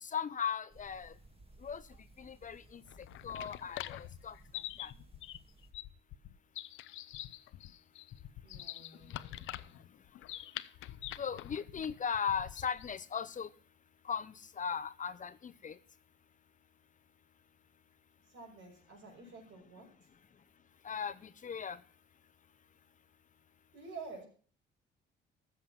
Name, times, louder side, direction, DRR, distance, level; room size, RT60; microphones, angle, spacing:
voice 1, 0.0-1.1 1.6-1.8 2.2-2.8 3.2-4.3 4.8-4.9 11.2-13.5 14.0-15.8 20.8-21.8, left 7 dB, 40° left, 14 dB, 0.8 m, -38 dB
sound 1, 0.7-5.7, right 1 dB, 30° right, 2.4 m, -59 dB
sound 2, 2.8-13.0, left 14 dB, 80° left, 0.6 m, -46 dB
voice 2, 8.4-9.8 18.3-19.9 23.7-24.3, right 4 dB, 70° right, 0 dB, 6.1 m, -50 dB
13.5 x 7.5 x 5.9 m, 0.43 s
cardioid pair, 90°, 20 cm